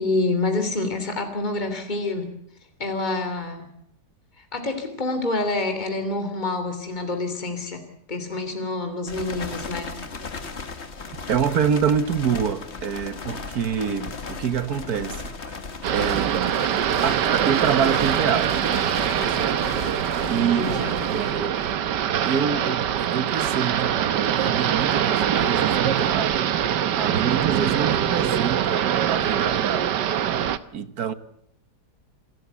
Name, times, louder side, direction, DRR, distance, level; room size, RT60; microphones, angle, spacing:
voice 1, 0.0-2.3 2.8-3.7 4.4-7.8 8.1-9.9 20.3-20.9, left 2 dB, 25° left, 3.2 m, -27 dB
sound 1, 9.1-21.9, left 4 dB, 40° left, 1.9 m, -36 dB
voice 2, 11.3-15.6 15.9-16.6 17.0-18.6 19.4-19.6 20.2-20.8 21.1-21.6 22.2-26.6 26.9-29.9 30.7-31.1, right 7 dB, 65° right, 1.7 m, -26 dB
sound 2, 15.8-30.6, right 9 dB, 85° right, 1.6 m, -23 dB
27.5 x 13.5 x 8.2 m
omnidirectional pair, 1.8 m